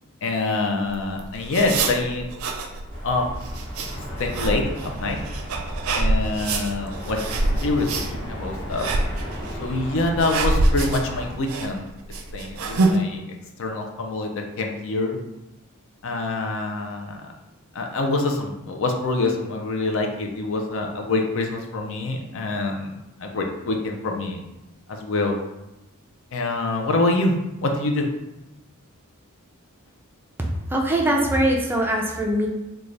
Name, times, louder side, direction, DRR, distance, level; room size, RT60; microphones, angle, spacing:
voice 1, 0.2-2.3 3.0-3.2 4.2-4.6 5.0-5.2 5.9-7.2 7.4-8.0 8.3-8.9 9.6-11.9 12.3-13.2 13.6-15.2 16.0-17.2 17.7-22.9 23.2-24.4 24.9-25.4 26.3-27.3 27.6-28.1, left 2 dB, 60° left, 2 dB, 0.5 m, -25 dB
sound 1, 0.9-13.0, right 2 dB, 70° right, 0.4 m, -26 dB
sound 2, 2.9-11.3, equal, 20° left, 0.8 m, -34 dB
voice 2, 30.7-32.5, right 1 dB, 10° right, 0 dB, 0.4 m, -21 dB
3.2 x 2.3 x 3.8 m, 0.96 s
head